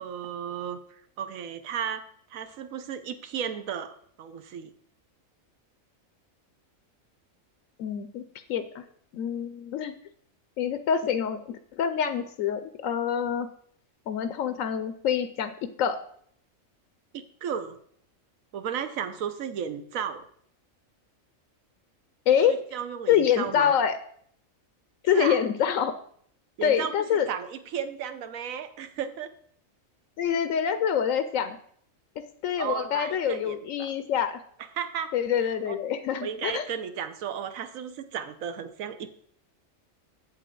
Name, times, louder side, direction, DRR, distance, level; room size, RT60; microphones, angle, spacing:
voice 1, 0.0-4.7 17.1-17.8 18.5-20.2 22.5-23.7 25.1-25.4 26.6-29.3 32.6-33.9 34.8-35.1 35.7-35.8 36.2-39.1, right 8 dB, 80° right, 10 dB, 1.1 m, -34 dB
voice 2, 7.8-8.2 8.5-8.8 9.1-9.9 10.6-13.5 14.1-15.5 15.8-16.0 22.3-22.6 23.1-24.0 25.0-25.9 26.6-27.3 30.2-31.6 32.4-34.4 35.1-36.7, left 8 dB, 80° left, 11 dB, 1.0 m, -26 dB
8.0 x 7.4 x 3.8 m, 0.62 s
omnidirectional pair, 1.4 m